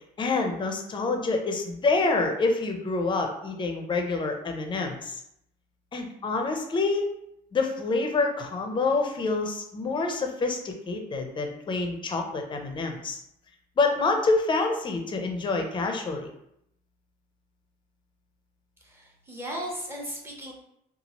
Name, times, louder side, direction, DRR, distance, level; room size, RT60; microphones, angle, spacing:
voice 1, 0.2-5.2 5.9-7.1 7.5-13.2 13.8-16.3, left 3 dB, 30° left, 4 dB, 0.5 m, -27 dB
voice 2, 18.8-20.5, equal, 15° right, -3 dB, 0.8 m, -36 dB
2.8 x 2.4 x 2.9 m, 0.77 s
cardioid pair, 110°, 17 cm